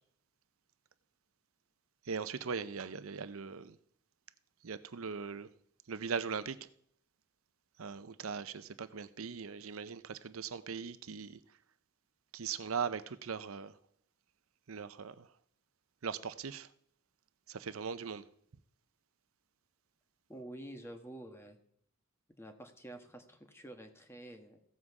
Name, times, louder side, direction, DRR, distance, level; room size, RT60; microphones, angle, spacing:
voice 1, 2.1-3.8 4.6-5.5 5.9-6.6 7.8-11.4 12.3-13.7 14.7-15.3 16.0-16.7 17.5-18.2, right 6 dB, 85° right, 0.7 m, -39 dB
voice 2, 20.3-21.6 22.4-24.6, right 1 dB, 10° left, 1.4 m, -49 dB
15.5 x 7.4 x 4.8 m
head